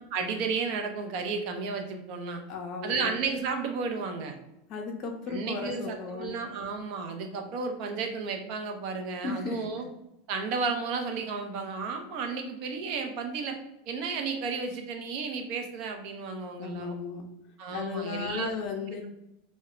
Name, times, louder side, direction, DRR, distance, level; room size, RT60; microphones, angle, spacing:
voice 1, 0.1-2.4 2.8-4.4 5.3-9.9 10.3-13.6 13.9-17.0 17.6-18.5, right 4 dB, 60° right, 4 dB, 0.5 m, -33 dB
voice 2, 2.5-3.2 4.7-6.4 9.2-9.8 16.6-17.3 17.7-19.1, left 5 dB, 50° left, 1 dB, 0.4 m, -35 dB
2.1 x 2.0 x 3.6 m, 0.87 s
supercardioid pair, 115°, 0 cm